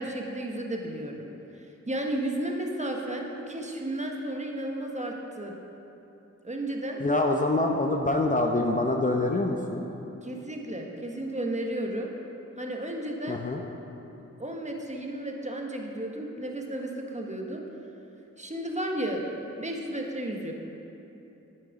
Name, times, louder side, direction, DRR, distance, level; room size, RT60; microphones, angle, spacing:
voice 1, 0.0-5.5 6.4-7.0 10.2-12.1 12.6-13.4 14.4-17.6 18.4-20.5, right 1 dB, 25° right, 1 dB, 1.3 m, -33 dB
voice 2, 7.0-9.8 13.3-13.6, left 2 dB, 25° left, 2 dB, 0.7 m, -25 dB
9.0 x 8.9 x 4.9 m, 3.0 s
cardioid pair, 55°, 31 cm